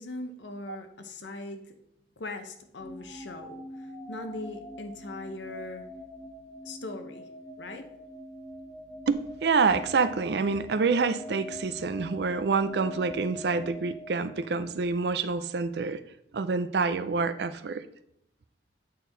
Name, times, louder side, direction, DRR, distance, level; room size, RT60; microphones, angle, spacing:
voice 1, 0.0-1.6 2.2-5.9 6.6-7.2 7.6-7.9, left 2 dB, 85° left, 7 dB, 0.8 m, -40 dB
sound 1, 2.8-14.9, left 1 dB, ahead, 1.2 m, -44 dB
voice 2, 9.1-16.0 16.3-17.8, right 4 dB, 65° right, 12 dB, 0.5 m, -27 dB
8.2 x 4.4 x 3.9 m, 0.75 s
head